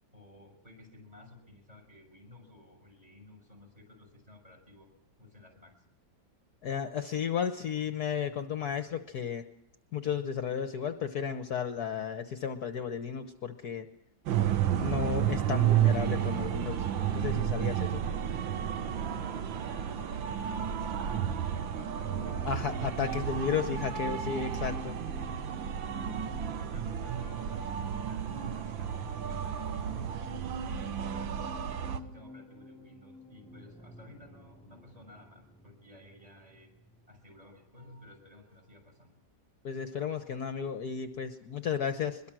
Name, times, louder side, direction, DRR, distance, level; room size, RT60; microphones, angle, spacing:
voice 1, 0.1-4.9 5.2-5.8 18.8-23.5 25.6-36.7 37.1-39.2, left 2 dB, 20° right, 2 dB, 6.4 m, -55 dB
voice 2, 6.6-9.4 9.9-13.9 14.8-18.0 22.4-24.9 39.6-42.2, left 7 dB, 60° left, 8 dB, 1.5 m, -33 dB
sound 1, 14.3-32.0, right 9 dB, 85° right, 1.8 m, -32 dB
sound 2, 15.2-30.5, right 3 dB, 45° right, 6.8 m, -55 dB
sound 3, 21.6-38.2 38.5-38.8, left 2 dB, 5° left, 1.5 m, -51 dB
23.0 x 22.0 x 6.2 m, 0.78 s
omnidirectional pair, 2.0 m